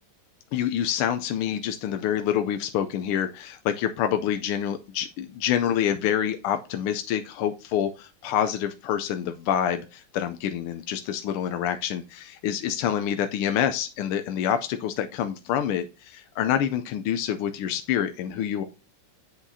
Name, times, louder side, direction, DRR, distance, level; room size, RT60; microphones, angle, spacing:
voice 1, 0.5-18.6, left 9 dB, 85° left, 8 dB, 1.5 m, -27 dB
7.9 x 6.0 x 2.7 m, 0.30 s
omnidirectional pair, 2.4 m